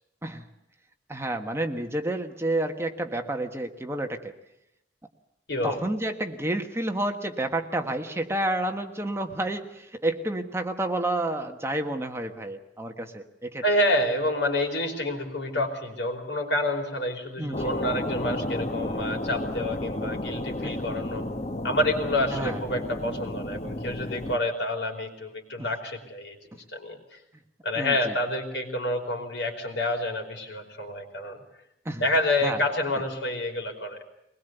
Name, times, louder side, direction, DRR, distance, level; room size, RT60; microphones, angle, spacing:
voice 1, 1.1-4.3 5.6-13.6 17.4-17.7 20.6-20.8 22.3-22.6 26.5-26.6 27.8-28.2 31.8-32.0 32.4-32.6 32.9-33.0, right 1 dB, 15° right, 5 dB, 1.4 m, -30 dB
voice 2, 5.5-5.8 13.6-21.2 21.6-26.4 26.7-27.2 27.6-31.4 32.0-34.0, left 1 dB, 75° left, 3 dB, 4.7 m, -28 dB
sound 1, 17.5-24.4, left 1 dB, 35° left, 1.2 m, -32 dB
22.5 x 20.5 x 8.1 m, 0.86 s
head